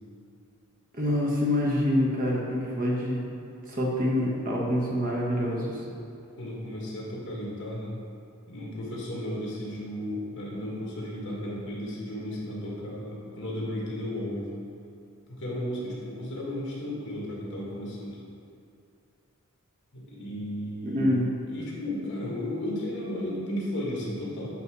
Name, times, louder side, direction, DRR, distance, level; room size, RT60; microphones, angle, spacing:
voice 1, 0.9-3.2 3.7-5.7 20.8-21.2, left 1 dB, 40° right, -4 dB, 1.3 m, -26 dB
voice 2, 6.4-8.0 8.5-14.5 15.3-18.2 19.9-24.6, left 1 dB, 60° left, -4 dB, 1.6 m, -34 dB
8.4 x 3.4 x 4.8 m, 2.5 s
head